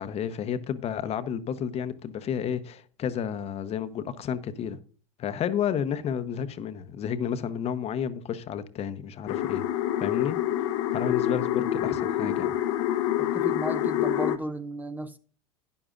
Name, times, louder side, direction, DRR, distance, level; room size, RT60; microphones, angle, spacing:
voice 1, 0.0-4.8 5.2-9.6 10.0-10.4 10.9-12.5, left 8 dB, 40° left, 0.9 m, -31 dB
sound 1, 9.3-14.4, left 12 dB, 65° left, 0.9 m, -27 dB
voice 2, 13.2-15.2, right 1 dB, 10° right, 0.7 m, -34 dB
12.5 x 9.9 x 2.5 m
hypercardioid pair, 90°, 17 cm